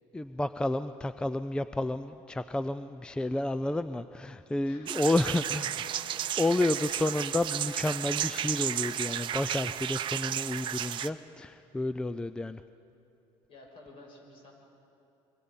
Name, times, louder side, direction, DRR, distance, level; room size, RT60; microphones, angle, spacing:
voice 1, 0.1-5.9 6.4-12.6, left 2 dB, 10° left, 12 dB, 0.4 m, -30 dB
voice 2, 4.6-5.4 5.7-6.2 13.5-14.5, left 2 dB, 55° left, 0 dB, 6.5 m, -53 dB
sound 1, 4.9-11.1, right 11 dB, 45° right, 0.7 m, -33 dB
26.0 x 23.5 x 5.6 m, 2.9 s
cardioid pair, 125°, 11 cm